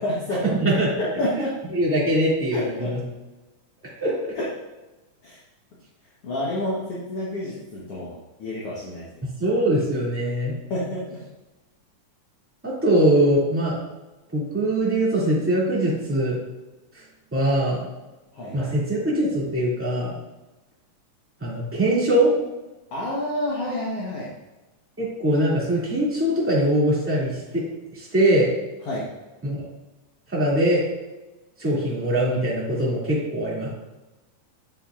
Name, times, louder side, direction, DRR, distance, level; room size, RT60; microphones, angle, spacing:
voice 1, 0.0-0.5 1.0-1.6 2.5-2.9 4.4-4.5 5.2-5.4 6.2-9.3 10.7-11.2 18.3-18.7 22.9-24.3 28.9-29.1, left 1 dB, 55° left, -6 dB, 1.9 m, -29 dB
voice 2, 0.6-0.9 1.7-3.0 4.0-4.3 9.4-10.5 12.6-13.8 14.3-16.4 17.3-17.8 18.5-20.1 21.4-22.3 25.0-27.6 27.9-28.5 29.4-29.6 30.3-30.8 31.6-33.7, right 1 dB, 5° right, -7 dB, 1.9 m, -22 dB
8.6 x 8.0 x 2.5 m, 1.1 s
omnidirectional pair, 3.6 m